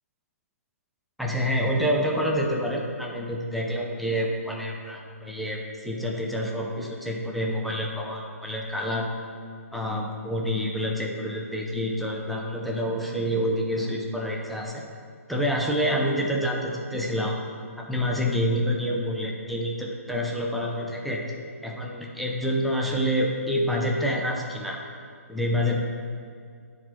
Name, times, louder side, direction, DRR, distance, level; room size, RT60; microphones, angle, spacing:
voice 1, 1.2-9.1 9.7-14.8 15.3-17.3 17.8-21.2 21.6-24.8 25.3-25.8, equal, ahead, -2 dB, 0.5 m, -27 dB
9.7 x 4.0 x 4.7 m, 2.2 s
hypercardioid pair, 155°, 8 cm